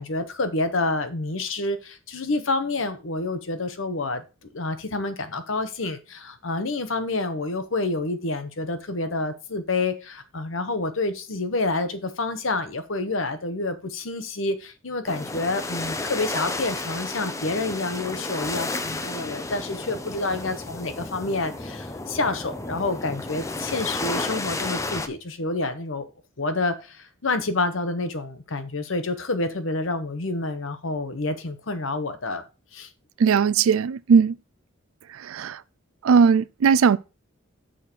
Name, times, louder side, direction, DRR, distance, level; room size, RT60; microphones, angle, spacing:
voice 1, 0.0-4.2 4.5-26.0 26.4-32.4 32.7-32.9, left 2 dB, 65° left, 1.0 m, -28 dB
sound 1, 15.0-25.1, left 2 dB, 15° left, 0.5 m, -32 dB
voice 2, 33.2-34.3 35.2-35.6 36.0-37.0, right 6 dB, 80° right, 0.4 m, -18 dB
6.4 x 5.0 x 4.5 m
head